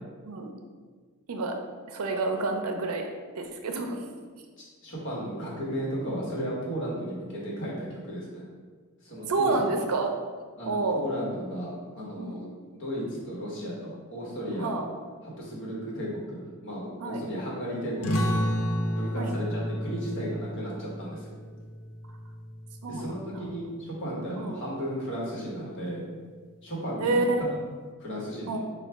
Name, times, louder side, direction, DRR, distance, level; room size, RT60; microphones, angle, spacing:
voice 1, 1.9-3.1 3.3-4.0 9.3-10.1 10.7-11.1 12.2-12.5 14.6-14.8 17.0-17.2 19.1-19.3 22.8-23.4 24.4-24.6 27.0-27.4 28.5-28.6, right 3 dB, 70° right, 4 dB, 0.5 m, -28 dB
voice 2, 4.8-8.4 9.0-9.7 10.6-12.5 12.8-14.7 15.4-18.4 18.9-21.3 22.9-26.0 26.6-27.3 28.0-28.6, equal, 60° left, -5 dB, 1.2 m, -34 dB
sound 1, 18.0-23.2, equal, 80° left, 0.5 m, -31 dB
4.7 x 2.3 x 3.4 m, 1.6 s
head